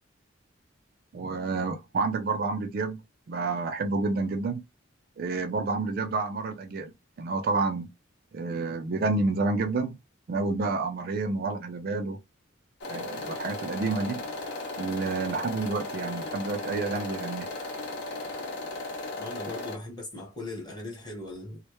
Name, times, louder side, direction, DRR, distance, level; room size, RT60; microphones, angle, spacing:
voice 1, 1.1-3.0 3.3-4.6 5.2-7.9 8.3-10.0 10.3-12.2 12.9-14.2 14.8-17.5, right 3 dB, 50° right, 0.3 m, -29 dB
sound 1, 12.8-19.8, left 2 dB, 60° left, 0.6 m, -36 dB
voice 2, 19.2-21.6, left 2 dB, 20° left, 0.9 m, -39 dB
2.1 x 2.0 x 2.9 m
head